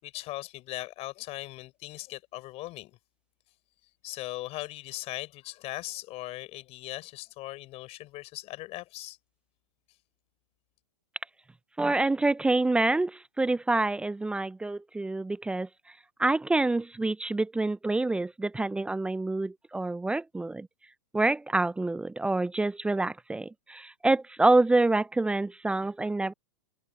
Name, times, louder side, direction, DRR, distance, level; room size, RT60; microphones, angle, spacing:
voice 1, 0.0-3.0 4.0-9.2, left 18 dB, 40° left, 5.2 m, -39 dB
voice 2, 11.8-15.7 16.2-20.7 21.1-26.3, right 2 dB, 5° right, 0.5 m, -27 dB
hypercardioid pair, 115°, 16 cm